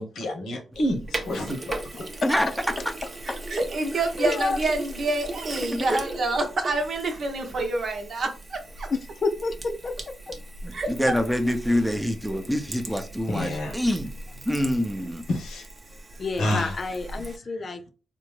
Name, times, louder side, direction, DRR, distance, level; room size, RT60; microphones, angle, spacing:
voice 1, 0.0-2.1 13.3-13.8 15.3-15.7 16.4-16.8, left 1 dB, 85° left, 1.0 m, -29 dB
Sink (filling or washing), 0.7-17.4, right 2 dB, 35° right, 0.7 m, -38 dB
voice 2, 3.2-8.9 10.7-10.9, right 2 dB, 60° right, 0.9 m, -27 dB
voice 3, 4.2-4.6 8.9-9.9 10.3-10.4 16.2-17.9, left 3 dB, 50° left, 0.5 m, -29 dB
voice 4, 5.6-6.0 10.6-14.1 14.5-15.2, equal, 5° right, 0.7 m, -26 dB
3.6 x 2.1 x 3.2 m
supercardioid pair, 55°, 0 cm